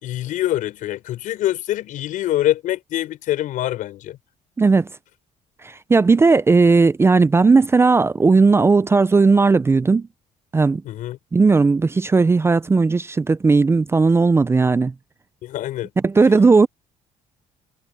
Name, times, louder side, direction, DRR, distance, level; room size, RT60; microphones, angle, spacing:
voice 1, 0.0-4.2 10.8-11.2 15.4-15.9, left 13 dB, 70° left, 6.1 m, -24 dB
voice 2, 4.6-4.9 5.6-10.1 10.5-10.8 11.3-14.9 16.0-16.7, right 4 dB, 20° right, 0.5 m, -16 dB
cardioid pair, 110°, 14 cm